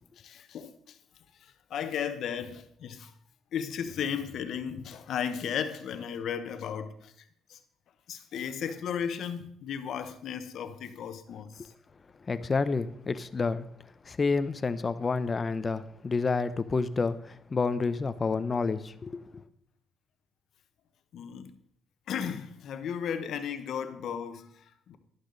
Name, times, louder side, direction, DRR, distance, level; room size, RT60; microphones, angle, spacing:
voice 1, 0.2-1.0 1.7-3.1 3.5-7.1 7.5-7.6 8.1-11.7 21.1-21.5 22.1-25.0, left 8 dB, 65° left, 1.1 m, -35 dB
voice 2, 12.3-13.6 14.1-19.4, left 4 dB, 30° left, 0.7 m, -29 dB
11.5 x 11.5 x 4.0 m
cardioid pair, 110°, 0 cm